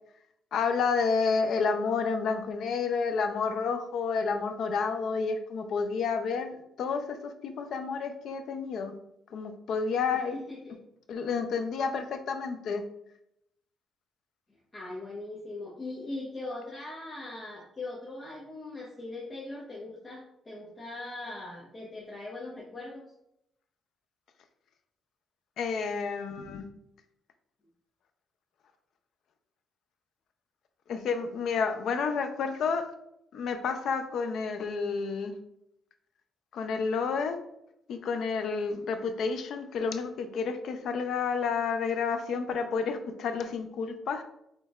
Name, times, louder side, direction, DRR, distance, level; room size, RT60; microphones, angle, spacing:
voice 1, 0.5-8.9 9.3-10.4 11.1-12.8 25.6-26.7 30.9-32.9 33.3-35.4 36.5-37.4 37.9-44.2, left 5 dB, 70° left, 7 dB, 0.5 m, -30 dB
voice 2, 10.1-10.7 14.7-23.1, left 2 dB, 30° left, -4 dB, 1.1 m, -40 dB
6.4 x 3.2 x 2.4 m, 0.79 s
cardioid pair, 90°, 0 cm